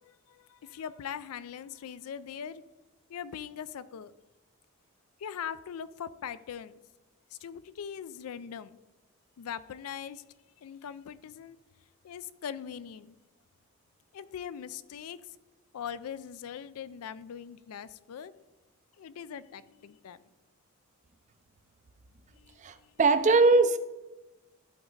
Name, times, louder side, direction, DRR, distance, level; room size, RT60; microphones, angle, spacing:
voice 1, 0.0-2.6 3.1-4.1 5.2-6.8 7.3-8.8 9.4-10.2 10.6-11.6 12.0-13.1 14.1-15.2 15.7-18.3 19.0-20.2 22.3-22.9, left 8 dB, 80° left, 15 dB, 0.4 m, -41 dB
voice 2, 22.6-23.8, right 3 dB, 30° right, 11 dB, 0.4 m, -21 dB
11.0 x 4.0 x 3.8 m, 1.1 s
head